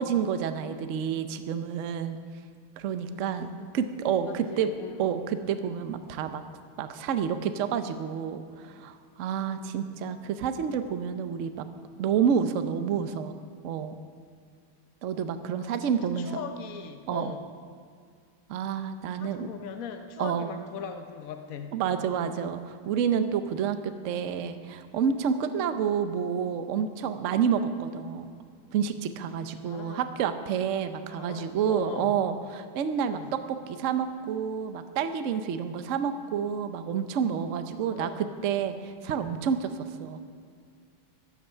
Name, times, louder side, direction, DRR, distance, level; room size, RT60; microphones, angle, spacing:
voice 1, 0.0-2.2 2.8-4.7 5.0-6.4 6.8-11.7 12.0-13.3 13.6-13.9 15.0-16.3 17.1-17.3 18.5-19.5 20.2-20.5 21.7-23.8 24.0-28.3 28.7-40.2, right 7 dB, 85° right, 9 dB, 0.6 m, -29 dB
voice 2, 3.1-3.7 4.2-5.0 9.4-9.7 15.6-17.5 19.2-21.8 25.5-25.8 29.6-30.1 31.0-32.1 33.0-33.3 37.7-38.3 39.0-39.4, left 7 dB, 70° left, 6 dB, 0.8 m, -41 dB
15.0 x 11.5 x 5.6 m, 2.1 s
omnidirectional pair, 2.3 m